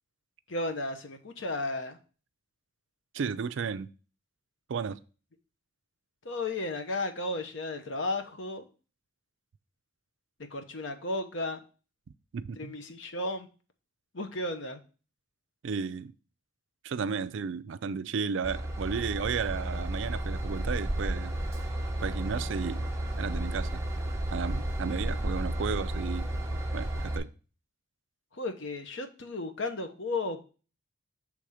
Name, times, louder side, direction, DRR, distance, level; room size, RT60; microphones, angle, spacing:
voice 1, 0.5-2.0 6.2-8.7 10.5-11.6 12.6-13.5 14.1-14.8 28.3-30.4, left 2 dB, 65° left, 0.8 m, -34 dB
voice 2, 3.1-3.9 4.7-5.0 12.3-12.7 15.6-16.1 16.8-21.4 22.0-22.8 23.2-23.8 24.3-26.3 26.7-27.3, right 6 dB, 65° right, 0.4 m, -33 dB
Train / Engine, 18.4-27.2, right 1 dB, 15° right, 0.8 m, -32 dB
6.9 x 3.4 x 4.9 m
head